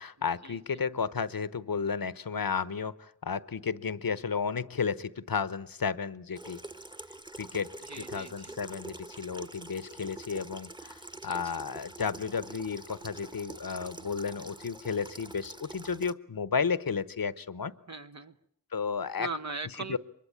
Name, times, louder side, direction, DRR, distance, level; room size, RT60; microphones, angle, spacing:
voice 1, 0.0-6.6 7.4-17.7 18.7-19.3 19.9-20.0, left 6 dB, 80° left, 17 dB, 1.0 m, -33 dB
Water tap faucet / Sink (filling or washing), 6.3-16.1, right 2 dB, 15° right, 1.2 m, -46 dB
voice 2, 7.9-8.7 11.1-11.6 17.9-18.4 19.2-20.0, right 3 dB, 50° right, 8 dB, 1.0 m, -40 dB
24.0 x 21.5 x 8.7 m, 0.70 s
wide cardioid pair, 40°, 34 cm